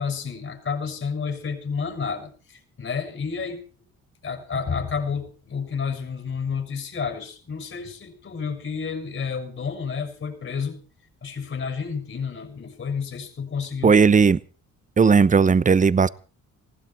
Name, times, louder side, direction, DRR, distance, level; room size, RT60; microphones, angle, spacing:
voice 1, 0.0-3.6 4.2-10.8 11.2-14.0, left 5 dB, 45° left, 6.6 m, -30 dB
voice 2, 13.8-14.4 15.0-16.1, right 5 dB, 25° right, 0.9 m, -16 dB
19.5 x 16.5 x 4.4 m
cardioid pair, 90°, 30 cm